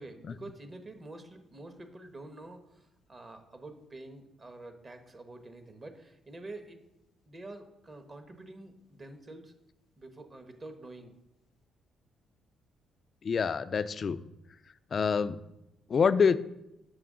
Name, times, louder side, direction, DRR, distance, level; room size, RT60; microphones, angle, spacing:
voice 1, 0.0-6.8 7.3-9.5 10.0-11.1, right 2 dB, 30° right, 7 dB, 1.1 m, -47 dB
voice 2, 13.2-14.2 14.9-15.4 15.9-16.4, left 6 dB, 45° left, 14 dB, 0.3 m, -26 dB
6.8 x 6.3 x 3.7 m, 0.87 s
cardioid pair, 90°, 0 cm